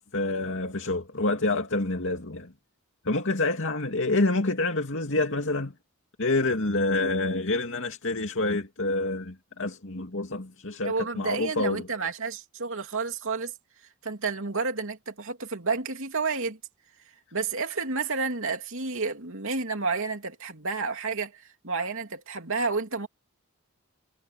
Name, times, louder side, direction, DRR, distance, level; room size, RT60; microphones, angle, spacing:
voice 1, 0.1-2.5 3.0-5.7 6.2-11.9, left 2 dB, 60° left, 2.6 m, -27 dB
voice 2, 10.8-13.5 14.0-16.6 17.3-23.1, right 4 dB, 60° right, 3.1 m, -30 dB
head